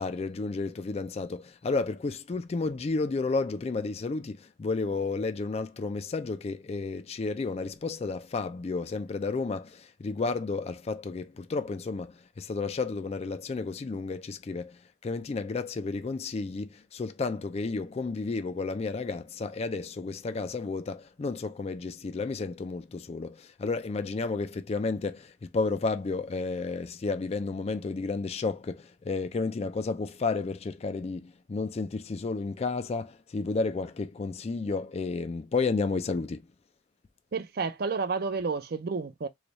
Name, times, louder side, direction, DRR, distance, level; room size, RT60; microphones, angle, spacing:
voice 1, 0.0-36.5, left 3 dB, 35° left, 0.3 m, -32 dB
voice 2, 37.3-39.3, right 4 dB, 55° right, 0.5 m, -30 dB
3.2 x 2.3 x 4.0 m
head